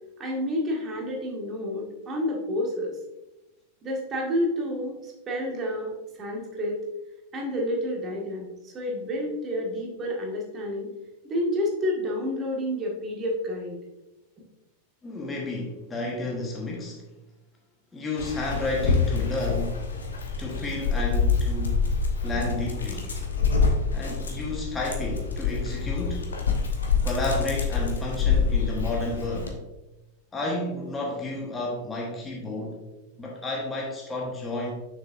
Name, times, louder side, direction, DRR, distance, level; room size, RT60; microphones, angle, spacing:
voice 1, 0.2-3.0 3.8-5.9 6.2-6.8 7.3-10.9 11.2-13.8, left 1 dB, 25° right, -2 dB, 1.8 m, -29 dB
voice 2, 15.0-17.0 17.9-20.1 20.4-21.9 22.2-23.1 23.9-26.3 27.0-29.6 30.3-32.8 33.2-34.7, left 2 dB, 15° left, -2 dB, 1.3 m, -31 dB
Dog, 18.2-29.5, left 5 dB, 70° left, 1.0 m, -26 dB
6.7 x 6.6 x 2.6 m, 1.0 s
figure-of-eight pair, 90°, 0 cm